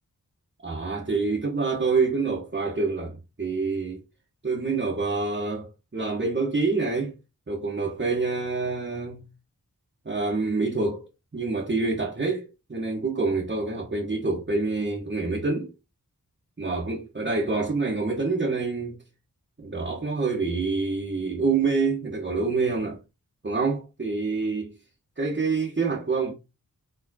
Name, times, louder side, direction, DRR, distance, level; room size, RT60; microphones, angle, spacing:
voice 1, 0.6-4.0 4.4-7.1 7.5-9.2 10.0-11.0 11.3-15.7 16.6-19.0 19.6-23.0 23.4-24.7 25.2-26.3, right 4 dB, 30° right, 1.2 m, -27 dB
4.4 x 3.6 x 2.8 m
wide cardioid pair, 70°, 36 cm